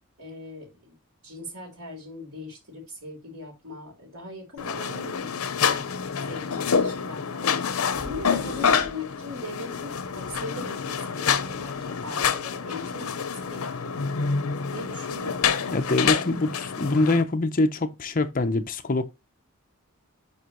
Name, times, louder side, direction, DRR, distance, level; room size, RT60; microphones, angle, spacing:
voice 1, 0.2-0.9 1.2-5.9 6.3-7.6 7.9-14.0 14.7-15.4, left 1 dB, 80° right, 3.7 m, -40 dB
sound 1, 4.6-17.2, left 6 dB, 80° left, 0.7 m, -27 dB
sound 2, 7.8-9.0 9.9-12.5, equal, 55° right, 2.1 m, -48 dB
voice 2, 15.7-19.0, left 2 dB, 40° left, 0.7 m, -24 dB
9.8 x 4.4 x 3.0 m
head